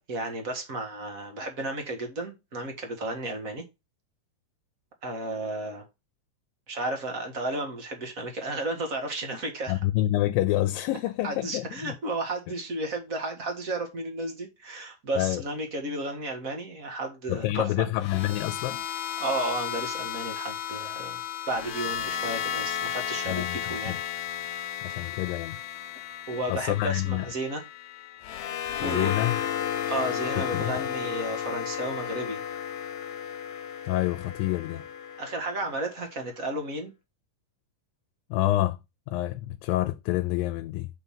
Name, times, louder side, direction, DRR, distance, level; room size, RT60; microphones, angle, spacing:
voice 1, 0.0-3.6 5.0-5.9 6.7-9.8 11.2-17.9 19.2-21.2 21.5-24.0 24.9-25.1 26.3-27.6 28.8-29.1 29.9-32.4 35.2-36.9, right 2 dB, 35° right, 1.4 m, -33 dB
voice 2, 9.7-12.0 15.2-15.4 17.3-18.8 23.3-24.0 24.8-25.6 26.5-27.3 28.8-29.4 30.4-30.8 33.9-34.8 38.3-38.8 39.1-40.9, left 15 dB, 85° left, 2.3 m, -27 dB
sound 1, 18.0-36.2, left 9 dB, 70° left, 1.9 m, -34 dB
7.2 x 4.4 x 5.6 m
omnidirectional pair, 3.9 m